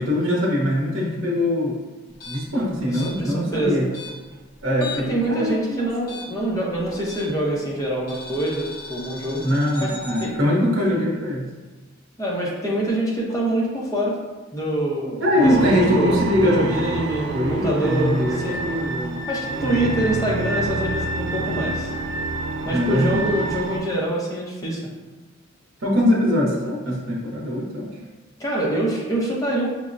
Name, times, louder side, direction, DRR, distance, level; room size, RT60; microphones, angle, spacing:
voice 1, 0.0-1.8 2.2-3.9 4.6-5.9 9.4-11.5 15.2-17.1 17.3-19.2 19.6-19.8 22.7-23.3 25.8-27.9, left 1 dB, 75° right, -3 dB, 0.8 m, -22 dB
sound 1, 2.1-5.2 5.5-7.5 8.1-10.3, left 3 dB, 50° left, 1.0 m, -38 dB
voice 2, 2.8-3.8 5.1-9.4 9.8-9.9 10.2-10.3 12.2-14.2 14.5-18.6 19.3-21.9 22.7-24.8 28.4-29.7, right 1 dB, 15° left, -4 dB, 0.7 m, -25 dB
sound 2, 15.4-23.8, right 2 dB, 60° right, 0.4 m, -27 dB
5.9 x 2.0 x 2.5 m, 1.2 s
head